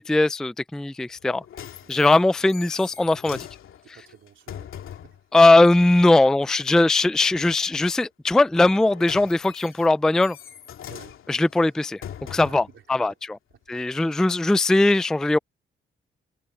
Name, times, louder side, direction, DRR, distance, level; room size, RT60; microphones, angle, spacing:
voice 1, 0.0-1.4 1.9-3.5 5.3-10.4 11.3-12.0 12.3-13.1 13.7-15.4, left 2 dB, 5° left, 0.3 m, -19 dB
sound 1, 1.2-5.2 8.6-12.8 13.5-13.6, left 9 dB, 80° left, 2.6 m, -41 dB
voice 2, 1.8-2.6 3.8-5.2 6.2-6.3 7.8-8.0 10.9-11.2 11.6-11.7 12.4-13.2 13.5-14.0, right 8 dB, 70° right, 3.5 m, -52 dB
cardioid pair, 95°, 21 cm